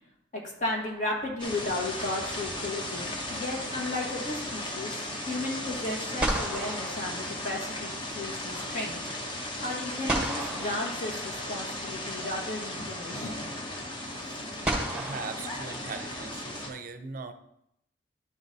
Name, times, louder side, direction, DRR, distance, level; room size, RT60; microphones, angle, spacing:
voice 1, 0.3-9.0 9.6-13.4, left 2 dB, 45° left, -1 dB, 1.7 m, -34 dB
sound 1, 0.7-1.6 5.7-5.8 6.2-7.9 10.1-11.7 13.0-13.1 14.6-16.3, right 1 dB, 5° right, 1.2 m, -34 dB
sound 2, 1.4-16.7, left 1 dB, 25° left, 0.9 m, -36 dB
voice 2, 14.9-17.3, right 4 dB, 50° right, 9 dB, 0.5 m, -39 dB
10.5 x 4.1 x 4.0 m, 0.79 s
head